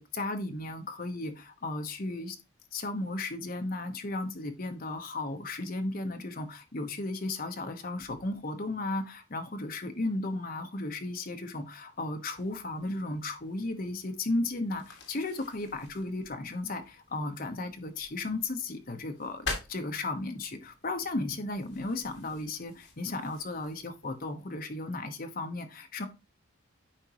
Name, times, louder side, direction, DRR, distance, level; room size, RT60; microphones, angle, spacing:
voice 1, 0.0-2.4 2.7-26.1, left 2 dB, 40° left, 1.0 m, -35 dB
sound 1, 12.3-24.2, left 3 dB, 60° left, 2.4 m, -46 dB
8.8 x 5.2 x 2.9 m
head